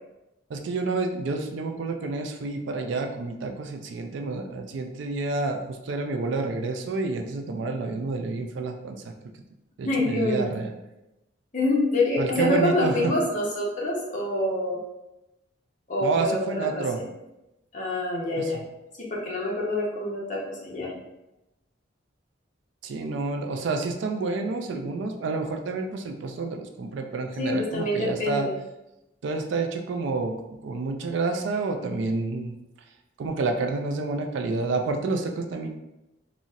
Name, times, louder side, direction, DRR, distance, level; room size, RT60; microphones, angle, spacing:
voice 1, 0.5-9.1 9.8-10.7 12.2-13.1 16.0-17.0 18.4-18.5 22.8-28.5 29.2-30.4 30.6-32.5 33.2-35.7, right 3 dB, 70° right, 4 dB, 0.3 m, -29 dB
voice 2, 9.8-10.5 11.5-14.8 15.9-16.4 16.7-17.1 17.7-18.6 19.1-20.9 27.4-28.5, left 1 dB, 40° left, -4 dB, 0.7 m, -26 dB
3.9 x 2.0 x 2.4 m, 0.94 s
head